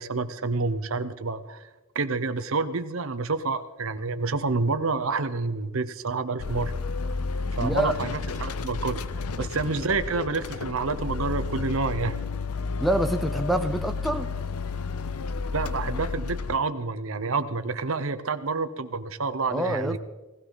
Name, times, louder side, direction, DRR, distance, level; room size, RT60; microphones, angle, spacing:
voice 1, 0.0-1.7 1.9-6.8 7.5-9.0 9.4-12.2 15.5-20.0, right 4 dB, 65° right, 0.9 m, -28 dB
sound 1, 6.4-16.6, left 4 dB, 90° left, 0.7 m, -31 dB
voice 2, 7.6-7.9 12.8-14.3 19.5-20.0, right 1 dB, ahead, 0.6 m, -26 dB
18.0 x 16.5 x 4.1 m
head